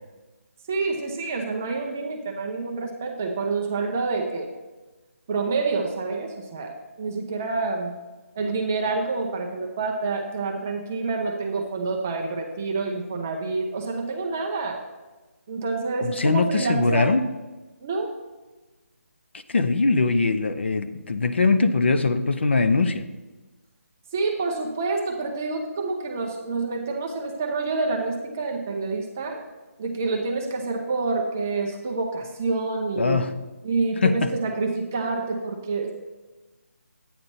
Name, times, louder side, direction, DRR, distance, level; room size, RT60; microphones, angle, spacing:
voice 1, 0.7-4.5 5.3-7.9 8.4-14.8 15.5-17.1 17.8-18.1 24.1-29.4 29.8-33.2 33.6-35.9, right 3 dB, 10° right, 1 dB, 0.4 m, -27 dB
voice 2, 16.0-17.3 19.5-23.1 33.0-33.3 34.0-34.3, left 3 dB, 50° left, 9 dB, 0.7 m, -21 dB
11.5 x 8.8 x 4.0 m, 1.2 s
hypercardioid pair, 175°, 8 cm